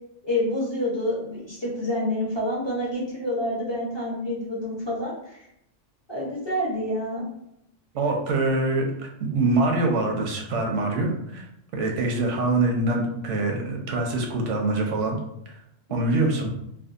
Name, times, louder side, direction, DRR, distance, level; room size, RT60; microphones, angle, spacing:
voice 1, 0.2-5.4 6.1-7.3 15.9-16.0, left 1 dB, 30° left, -6 dB, 0.6 m, -28 dB
voice 2, 7.9-11.5 11.7-15.2 15.5-15.6 15.9-16.5, right 2 dB, 85° right, 1 dB, 0.9 m, -24 dB
2.6 x 2.3 x 2.4 m, 0.78 s
omnidirectional pair, 1.2 m